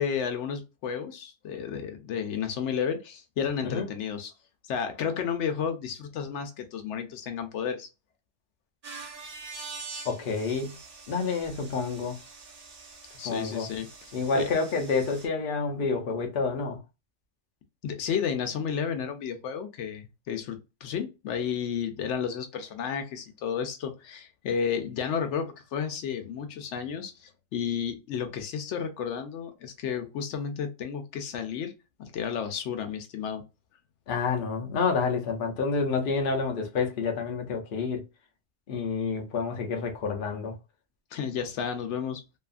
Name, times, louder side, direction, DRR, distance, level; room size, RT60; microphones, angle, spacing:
voice 1, 0.0-4.3 4.7-7.9 13.2-13.9 14.3-14.5 17.8-31.7 32.0-33.4 41.1-42.2, left 7 dB, 85° left, 0.9 m, -32 dB
sound 1, 8.8-15.3, right 4 dB, 40° right, 0.7 m, -45 dB
voice 2, 10.0-10.8 11.1-12.2 13.2-13.7 14.1-16.8 34.1-38.0 38.7-40.6, left 4 dB, 55° left, 0.7 m, -28 dB
2.7 x 2.3 x 2.4 m
omnidirectional pair, 1.2 m